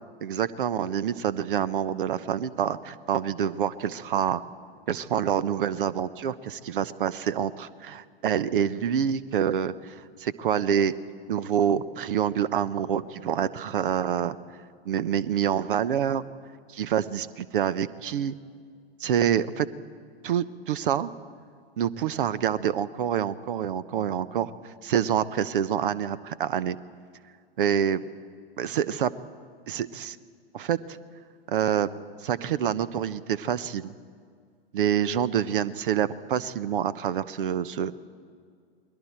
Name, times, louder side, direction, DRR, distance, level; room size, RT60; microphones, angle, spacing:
voice 1, 0.3-4.4 4.9-10.9 11.3-14.4 14.9-16.2 16.7-18.3 19.0-19.7 20.2-21.1 21.8-26.8 27.6-28.0 28.6-29.1 29.7-30.2 30.5-31.0 31.5-31.9 32.2-33.9 34.7-37.9, right 9 dB, 60° right, 17 dB, 0.9 m, -27 dB
29.5 x 21.0 x 4.4 m, 2.1 s
figure-of-eight pair, 100°, 30 cm